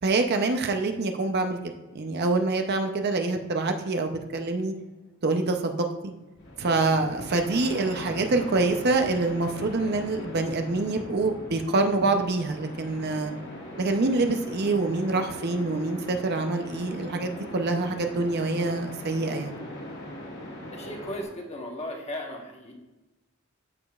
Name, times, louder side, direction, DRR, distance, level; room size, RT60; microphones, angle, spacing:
voice 1, 0.0-1.6 1.9-4.7 5.2-5.8 6.0-6.1 6.6-13.3 13.8-19.6, right 3 dB, 50° right, 5 dB, 0.6 m, -26 dB
sound 1, 6.4-21.2, left 1 dB, 55° left, 1.9 m, -40 dB
voice 2, 20.7-22.7, left 1 dB, 30° left, 1 dB, 1.2 m, -36 dB
13.5 x 5.0 x 2.4 m, 1.1 s
head